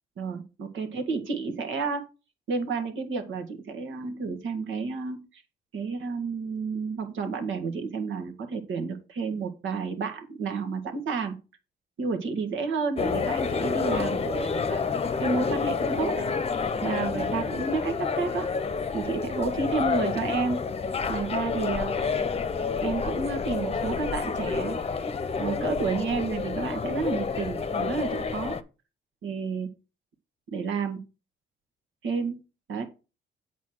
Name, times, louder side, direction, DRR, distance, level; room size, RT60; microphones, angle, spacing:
voice 1, 0.2-2.0 2.5-5.4 5.7-11.4 12.0-14.8 15.2-16.2 16.8-18.5 18.9-20.6 21.1-21.9 22.8-24.8 25.4-28.6 29.2-29.7 30.5-31.0 32.0-32.4 32.7-32.8, right 4 dB, 75° right, 5 dB, 1.9 m, -30 dB
sound 1, 13.0-28.6, left 5 dB, 30° left, 0.8 m, -29 dB
8.2 x 4.3 x 6.3 m, 0.32 s
cardioid pair, 90°, 20 cm